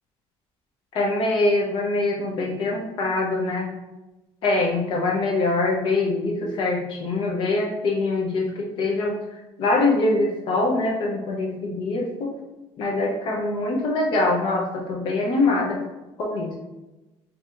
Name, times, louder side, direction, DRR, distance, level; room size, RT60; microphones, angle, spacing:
voice 1, 0.9-3.7 4.4-9.2 9.6-12.4 12.8-15.8 16.2-16.6, left 2 dB, 50° left, 0 dB, 0.7 m, -23 dB
4.0 x 2.8 x 2.5 m, 1.1 s
cardioid pair, 160°, 11 cm